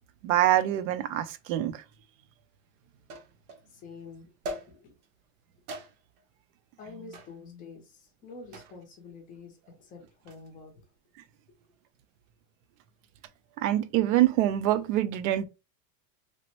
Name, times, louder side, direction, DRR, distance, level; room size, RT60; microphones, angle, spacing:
voice 1, 0.2-1.8 13.6-15.4, right 13 dB, 65° right, 0.5 m, -25 dB
sound 1, 1.9-2.0 3.1-3.7 4.4-5.1 5.7-6.2 7.1-7.4 8.5-8.9 10.1-10.5, equal, 85° right, 0.9 m, -41 dB
voice 2, 3.7-4.3 4.7-4.9 6.8-10.7, left 4 dB, 20° left, 0.5 m, -47 dB
3.1 x 2.1 x 2.9 m
supercardioid pair, 170°, 44 cm